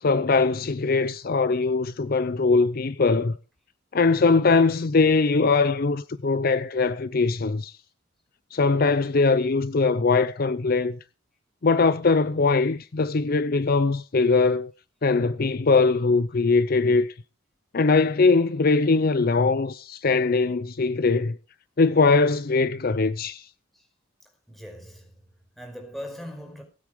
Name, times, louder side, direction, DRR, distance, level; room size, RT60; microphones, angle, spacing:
voice 1, 0.0-3.4 3.9-7.7 8.5-11.0 11.6-14.7 15.0-17.1 17.7-21.4 21.8-23.5, left 4 dB, 50° left, 0.6 m, -21 dB
voice 2, 24.2-26.6, equal, ahead, 5.1 m, -41 dB
19.0 x 8.5 x 5.0 m
head